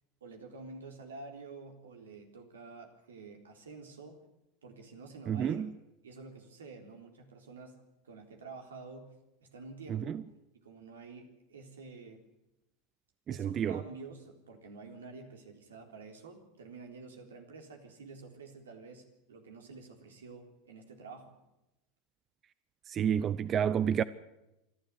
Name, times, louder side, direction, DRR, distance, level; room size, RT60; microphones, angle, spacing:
voice 1, 0.2-4.2 4.6-5.7 6.0-7.8 8.0-9.1 9.4-10.2 10.6-12.2 13.3-21.4, right 4 dB, 85° right, 3.6 m, -49 dB
voice 2, 5.3-5.7 9.9-10.2 13.3-13.8 22.9-24.0, right 8 dB, 35° right, 0.6 m, -30 dB
26.5 x 12.0 x 8.5 m
hypercardioid pair, 95°, 0 cm